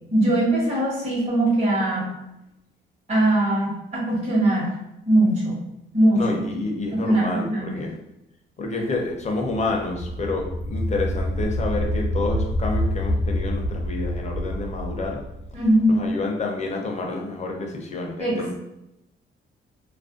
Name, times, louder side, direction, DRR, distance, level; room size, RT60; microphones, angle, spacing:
voice 1, 0.1-2.1 3.1-4.7 5.1-5.6 5.9-6.4 6.9-7.8 15.5-16.0 18.2-18.5, right 1 dB, 35° right, -6 dB, 1.0 m, -21 dB
voice 2, 6.1-8.0 8.6-15.2 15.9-18.5, left 2 dB, 35° left, 1 dB, 0.6 m, -28 dB
sound 1, 9.3-16.1, left 1 dB, 85° left, 0.6 m, -27 dB
2.4 x 2.1 x 2.4 m, 0.89 s
cardioid pair, 90°, 20 cm